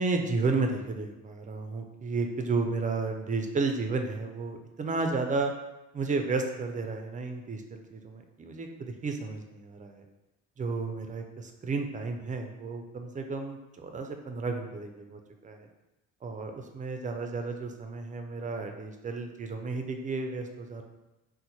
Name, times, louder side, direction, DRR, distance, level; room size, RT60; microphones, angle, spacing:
voice 1, 0.0-5.5 5.9-10.0 10.6-15.7 16.2-20.8, right 3 dB, 25° right, 5 dB, 0.4 m, -32 dB
2.9 x 2.1 x 4.0 m, 0.99 s
cardioid pair, 90°, 30 cm